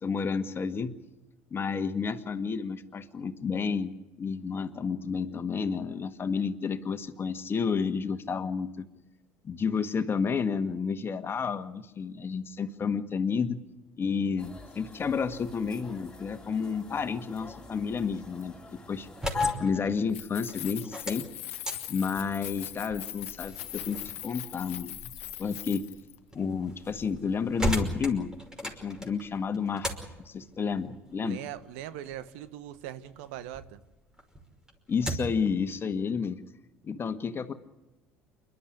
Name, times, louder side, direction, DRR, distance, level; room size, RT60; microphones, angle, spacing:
voice 1, 0.0-1.0 1.5-8.8 9.4-13.6 14.0-18.5 18.9-19.1 19.6-21.3 21.9-25.0 25.4-25.9 26.3-28.3 28.6-29.9 30.3-31.4 34.9-36.4 36.8-37.5, left 5 dB, 35° left, 10 dB, 1.8 m, -31 dB
sound 1, 14.4-19.5, left 5 dB, 10° left, 3.5 m, -39 dB
sound 2, 19.0-33.7 34.1-35.5, equal, 10° right, 5.4 m, -38 dB
Keys jangling, 20.0-26.2, left 15 dB, 75° left, 0.9 m, -41 dB
voice 2, 31.2-33.8, right 12 dB, 70° right, 14 dB, 1.3 m, -40 dB
28.5 x 12.5 x 10.0 m, 1.0 s
hypercardioid pair, 65°, 7 cm